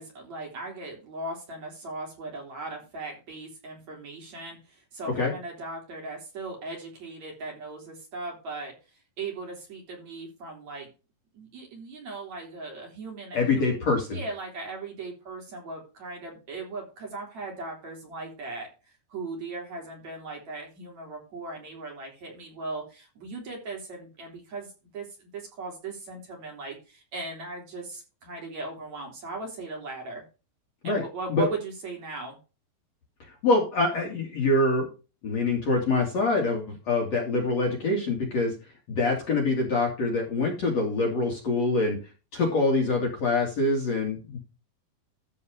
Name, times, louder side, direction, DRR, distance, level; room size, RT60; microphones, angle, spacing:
voice 1, 0.0-8.7 9.2-10.9 11.3-13.7 14.1-30.2 30.8-32.4, right 3 dB, 45° right, 0 dB, 4.4 m, -38 dB
voice 2, 13.3-14.2 30.8-31.0 31.3-31.5 33.4-34.9 35.2-38.5 38.9-42.0 42.3-44.4, left 2 dB, 45° left, 0 dB, 2.9 m, -25 dB
13.5 x 4.8 x 4.9 m, 0.31 s
omnidirectional pair, 4.9 m